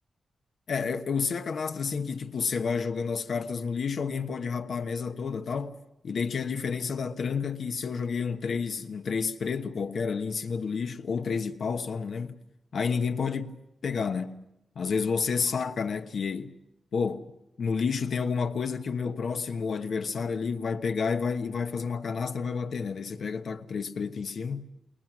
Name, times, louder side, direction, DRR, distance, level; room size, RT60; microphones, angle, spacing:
voice 1, 0.7-5.7 6.0-12.4 12.7-14.4 14.7-16.6 16.9-17.3 17.6-24.7, left 5 dB, 70° left, 1.2 m, -30 dB
29.5 x 21.5 x 6.2 m
wide cardioid pair, 115°, 0 cm